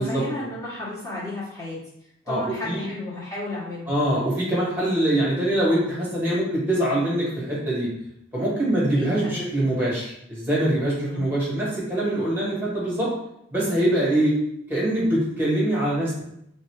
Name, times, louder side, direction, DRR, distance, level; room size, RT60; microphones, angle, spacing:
voice 1, 0.0-1.8 2.3-3.9 8.9-9.7 11.1-11.3, left 2 dB, 15° left, -8 dB, 1.3 m, -33 dB
voice 2, 3.9-7.9 8.3-13.1 13.5-14.3 14.7-16.2, right 1 dB, 10° right, -7 dB, 1.5 m, -23 dB
3.4 x 2.8 x 3.2 m, 0.75 s
head